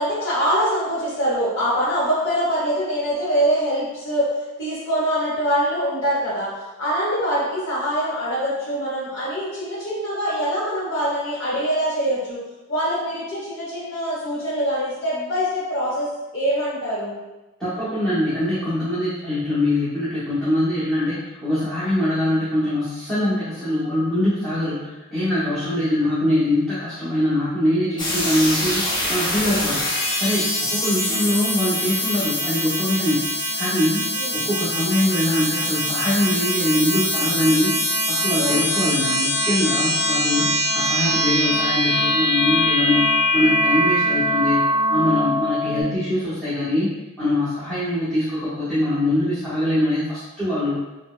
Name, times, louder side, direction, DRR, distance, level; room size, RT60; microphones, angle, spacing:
voice 1, 0.0-4.3 4.6-12.4 12.7-17.1 34.2-34.4 38.4-38.6 45.7-46.0, equal, 60° left, -9 dB, 1.0 m, -24 dB
voice 2, 17.6-29.8 30.2-34.1 34.3-37.7 38.1-44.6 44.9-46.9 47.2-50.8, left 1 dB, 5° left, -14 dB, 0.8 m, -23 dB
sound 1, 28.0-45.8, left 1 dB, 20° left, 0.5 m, -22 dB
4.1 x 2.1 x 2.2 m, 1.1 s
head